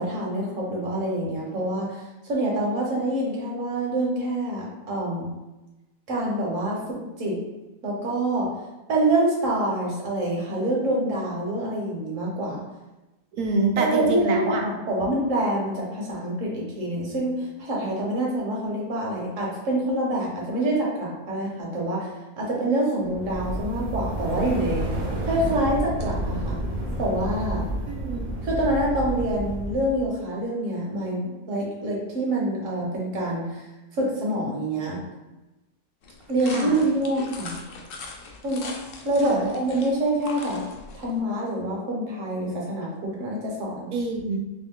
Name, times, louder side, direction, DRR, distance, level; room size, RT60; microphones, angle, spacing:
voice 1, 0.0-5.3 6.1-7.4 7.8-8.5 8.9-12.6 13.8-22.1 22.4-24.9 25.2-26.6 27.0-27.6 28.4-33.6 33.9-35.0 36.3-37.6 38.4-38.6 39.0-40.7 40.9-43.9, right 1 dB, 60° right, -3 dB, 1.3 m, -26 dB
voice 2, 13.3-14.6 27.9-28.3 36.5-36.8 39.2-39.5 43.9-44.4, right 3 dB, 80° right, 1 dB, 1.2 m, -26 dB
sound 1, 23.1-30.0, right 1 dB, 45° right, 0.6 m, -30 dB
sound 2, 36.0-41.2, left 3 dB, 70° left, 0.5 m, -41 dB
3.2 x 3.1 x 3.6 m, 1.1 s
omnidirectional pair, 1.6 m